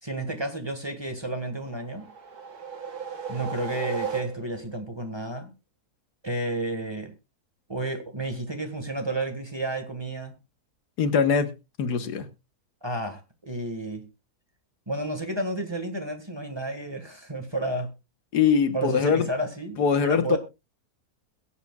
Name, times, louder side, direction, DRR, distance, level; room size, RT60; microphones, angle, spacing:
voice 1, 0.0-2.1 3.3-5.5 6.2-7.1 7.7-10.4 12.8-14.1 14.9-17.9 18.7-20.4, right 1 dB, 15° right, 1.8 m, -31 dB
sound 1, 1.6-4.8, right 7 dB, 75° right, 2.2 m, -35 dB
voice 2, 11.0-11.5 11.8-12.3 18.3-19.3 19.8-20.4, left 6 dB, 90° left, 1.8 m, -22 dB
22.0 x 8.2 x 2.4 m
omnidirectional pair, 1.7 m